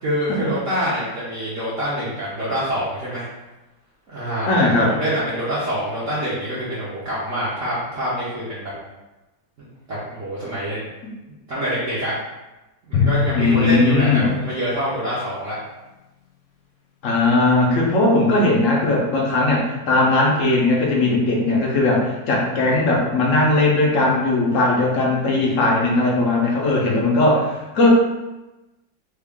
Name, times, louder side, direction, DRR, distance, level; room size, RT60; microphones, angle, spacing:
voice 1, 0.0-3.2 4.1-8.7 9.9-10.8 11.5-12.1 12.8-15.6, equal, 55° right, -10 dB, 1.0 m, -26 dB
voice 2, 4.5-4.9 11.0-11.1 13.3-14.3 17.0-27.9, left 2 dB, 60° left, -2 dB, 0.9 m, -18 dB
Drum, 12.9-15.3, left 6 dB, 80° left, 1.2 m, -25 dB
3.4 x 2.3 x 3.5 m, 1.0 s
omnidirectional pair, 1.9 m